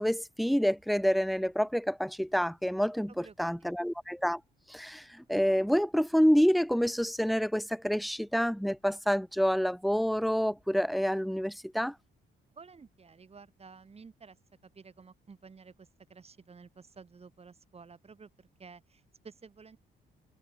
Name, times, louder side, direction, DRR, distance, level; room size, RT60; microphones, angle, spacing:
voice 1, 0.0-4.4 4.7-11.9, equal, ahead, 0.4 m, -28 dB
voice 2, 3.1-3.7 12.5-14.4 14.6-19.8, right 5 dB, 30° right, 1.4 m, -53 dB
cardioid pair, 90°, 20 cm